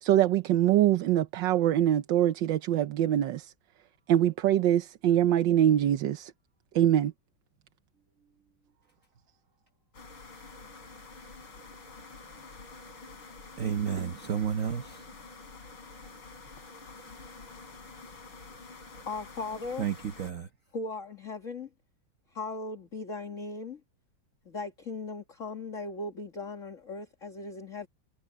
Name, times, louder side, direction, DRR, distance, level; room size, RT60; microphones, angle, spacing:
voice 1, 0.0-3.5 4.1-6.3 6.7-7.1, right 11 dB, 70° right, 1.4 m, -24 dB
sound 1, 9.9-20.3, left 3 dB, 85° left, 4.3 m, -48 dB
voice 2, 13.6-15.1 19.8-20.5, right 8 dB, 50° right, 1.1 m, -31 dB
voice 3, 19.1-19.9 20.7-21.7 22.3-23.8 24.5-27.9, left 3 dB, 40° left, 2.2 m, -38 dB
omnidirectional pair, 2.2 m